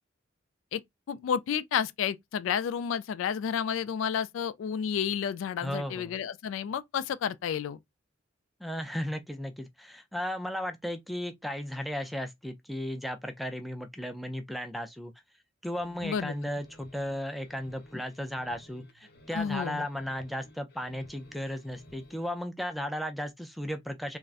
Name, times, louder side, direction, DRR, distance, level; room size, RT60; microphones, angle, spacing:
voice 1, 1.1-7.8 16.0-16.3 19.3-19.9, left 8 dB, 80° left, 0.3 m, -31 dB
voice 2, 5.6-6.2 8.6-15.1 15.6-24.2, equal, ahead, 0.3 m, -35 dB
sound 1, 15.6-22.4, left 1 dB, 50° left, 0.8 m, -56 dB
3.5 x 2.1 x 2.4 m
head